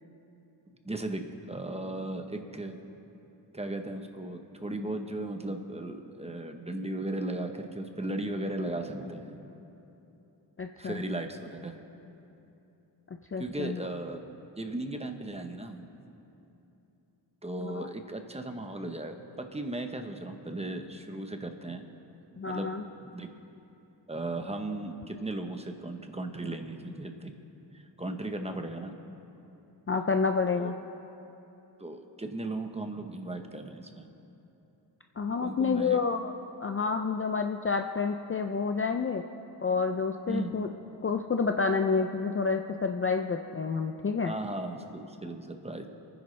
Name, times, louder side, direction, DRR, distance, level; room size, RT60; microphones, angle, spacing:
voice 1, 0.8-2.8 3.5-9.4 10.8-11.7 13.4-14.2 14.6-15.9 17.4-21.8 22.4-22.7 23.0-23.3 24.1-27.3 27.7-28.9 30.5-30.7 31.8-34.1 35.4-36.0 40.3-40.6 44.3-45.9, right 2 dB, 15° right, 5 dB, 0.8 m, -36 dB
voice 2, 10.6-11.0 13.3-13.8 17.6-17.9 22.4-22.8 29.9-30.7 35.2-36.3 36.6-39.2 39.6-40.7 41.0-44.3, left 5 dB, 30° left, 5 dB, 0.4 m, -29 dB
28.0 x 10.0 x 3.2 m, 2.9 s
wide cardioid pair, 145°, 43 cm